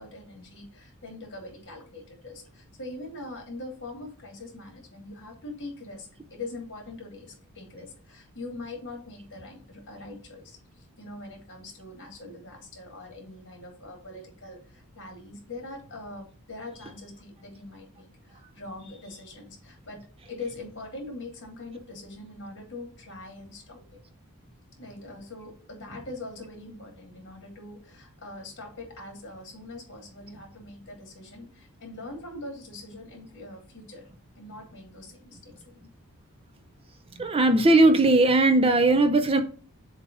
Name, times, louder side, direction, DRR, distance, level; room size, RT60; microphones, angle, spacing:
voice 1, 0.0-23.8 24.8-34.1 34.3-35.9, left 2 dB, 55° left, 3.1 m, -42 dB
voice 2, 37.1-39.4, right 2 dB, 25° right, 0.6 m, -19 dB
7.2 x 2.9 x 5.4 m
head